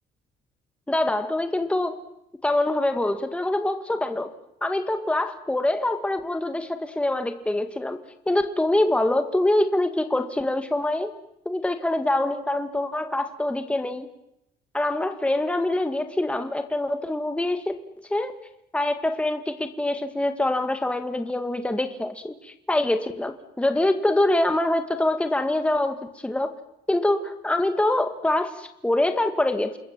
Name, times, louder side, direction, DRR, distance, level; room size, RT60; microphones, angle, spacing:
voice 1, 0.9-2.0 2.4-4.3 4.6-8.0 8.3-11.1 11.5-14.1 14.7-17.7 18.1-18.3 18.7-26.5 26.9-29.8, left 1 dB, 5° left, 8 dB, 1.9 m, -24 dB
28.5 x 21.5 x 7.6 m, 0.83 s
cardioid pair, 110°, 17 cm